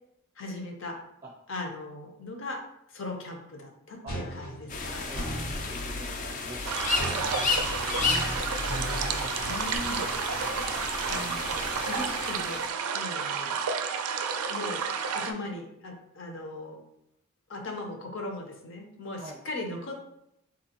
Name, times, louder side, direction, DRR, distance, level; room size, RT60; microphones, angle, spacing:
voice 1, 0.4-1.0 1.5-2.6 2.9-5.0 9.4-10.1 11.1-12.6 12.9-13.6 14.5-14.9 15.1-16.8 17.5-20.1, left 2 dB, 60° left, 2 dB, 0.7 m, -38 dB
sound 1, 4.1-5.6 6.9-9.8, right 1 dB, 85° left, 1.2 m, -37 dB
sound 2, 4.7-12.7, left 3 dB, 35° left, 0.3 m, -32 dB
voice 2, 5.1-8.3 19.2-19.4, right 1 dB, 25° right, -2 dB, 0.5 m, -47 dB
sound 3, 6.7-15.3, right 6 dB, 90° right, 0.4 m, -31 dB
3.9 x 2.7 x 2.9 m, 0.80 s
head